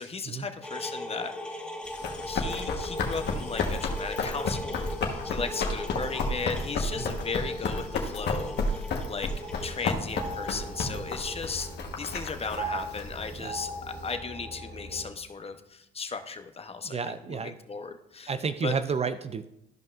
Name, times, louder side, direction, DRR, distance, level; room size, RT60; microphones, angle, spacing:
voice 1, 0.0-1.7 2.2-9.3 9.6-18.3 18.6-18.7, left 4 dB, 30° left, 7 dB, 0.8 m, -36 dB
sound 1, 0.6-11.7, left 1 dB, 5° left, 1.3 m, -39 dB
Run, 1.8-14.1, left 3 dB, 60° left, 1.3 m, -32 dB
sound 2, 9.4-15.0, right 2 dB, 50° right, 2.7 m, -39 dB
voice 2, 16.8-17.6 18.3-19.5, right 5 dB, 30° right, 12 dB, 0.4 m, -31 dB
13.5 x 5.3 x 2.5 m, 0.85 s
supercardioid pair, 70°, 20 cm